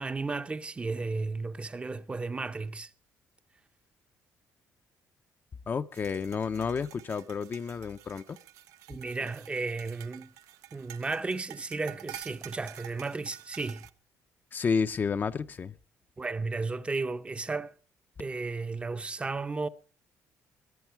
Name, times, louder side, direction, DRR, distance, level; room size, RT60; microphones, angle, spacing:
voice 1, 0.0-2.9 8.9-10.3 10.7-13.8 16.2-17.7 18.2-19.7, right 3 dB, 20° right, 0.7 m, -34 dB
voice 2, 5.7-8.4 14.5-15.7, left 5 dB, 35° left, 0.6 m, -31 dB
sound 1, 5.9-13.9, right 14 dB, 85° right, 0.8 m, -49 dB
20.5 x 11.5 x 4.6 m
cardioid pair, 110°, 6 cm